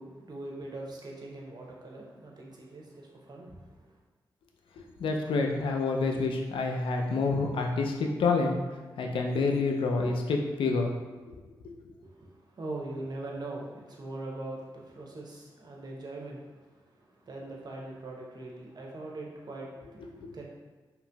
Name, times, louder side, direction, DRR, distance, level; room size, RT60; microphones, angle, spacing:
voice 1, 0.0-3.6 12.0-16.5 17.2-20.4, right 2 dB, 50° right, -2 dB, 0.7 m, -41 dB
voice 2, 4.8-8.6 9.0-10.9 11.3-11.4 20.2-20.3, left 3 dB, 75° left, 2 dB, 0.4 m, -28 dB
2.8 x 2.5 x 2.2 m, 1.3 s
supercardioid pair, 40°, 9 cm